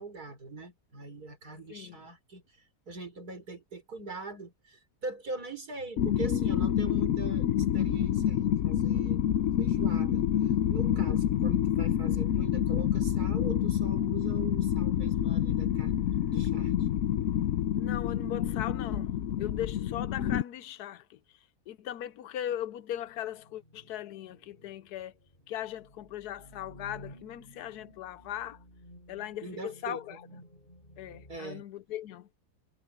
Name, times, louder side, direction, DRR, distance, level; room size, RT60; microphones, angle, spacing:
voice 1, 0.0-9.2 9.6-16.9 29.4-30.0 31.3-31.6, right 3 dB, 75° right, 5.2 m, -42 dB
voice 2, 1.7-2.0 17.8-21.2 21.7-25.1 25.5-28.6 29.1-30.2 31.0-32.3, left 11 dB, 80° left, 1.2 m, -39 dB
sound 1, 6.0-20.4, left 10 dB, 65° left, 1.0 m, -28 dB
sound 2, 22.9-31.4, equal, 30° left, 8.2 m, -54 dB
omnidirectional pair, 1.6 m